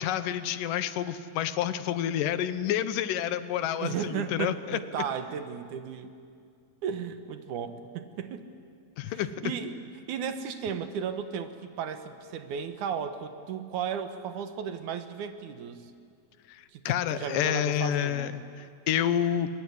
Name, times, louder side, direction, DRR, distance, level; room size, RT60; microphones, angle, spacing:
voice 1, 0.0-4.8 9.0-9.3 16.5-19.5, left 10 dB, 90° left, 13 dB, 2.6 m, -29 dB
voice 2, 3.8-6.1 6.8-8.5 9.1-15.9 16.7-16.8 17.1-18.4, right 7 dB, 75° right, 9 dB, 2.6 m, -35 dB
23.0 x 22.0 x 9.9 m, 2.4 s
omnidirectional pair, 3.7 m